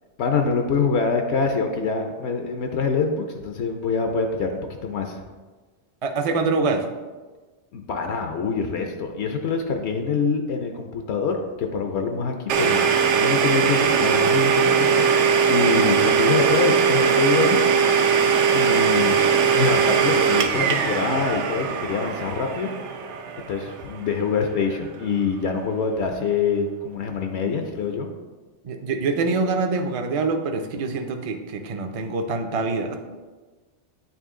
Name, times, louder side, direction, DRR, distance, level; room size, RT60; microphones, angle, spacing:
voice 1, 0.2-5.2 7.7-12.8 13.1-17.6 18.5-19.2 19.5-22.7 23.5-28.1, left 5 dB, 75° left, 4 dB, 0.9 m, -25 dB
voice 2, 6.0-6.9 28.6-33.0, right 3 dB, 45° right, 5 dB, 0.4 m, -25 dB
Domestic sounds home sounds, 12.5-24.1, right 6 dB, 90° right, 0.9 m, -20 dB
8.9 x 3.0 x 3.7 m, 1.3 s
omnidirectional pair, 1.2 m